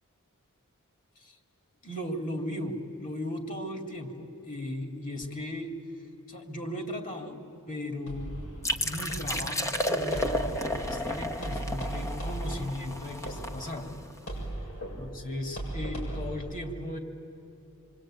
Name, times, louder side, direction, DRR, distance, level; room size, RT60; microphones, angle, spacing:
voice 1, 1.8-5.8 6.3-8.5 8.8-13.9 15.0-17.0, left 1 dB, 40° left, 4 dB, 2.8 m, -37 dB
sound 1, 8.1-16.3, right 1 dB, 80° left, 7.6 m, -38 dB
sound 2, 8.6-14.2, left 1 dB, 15° left, 1.1 m, -32 dB
26.5 x 24.5 x 9.0 m, 2.8 s
head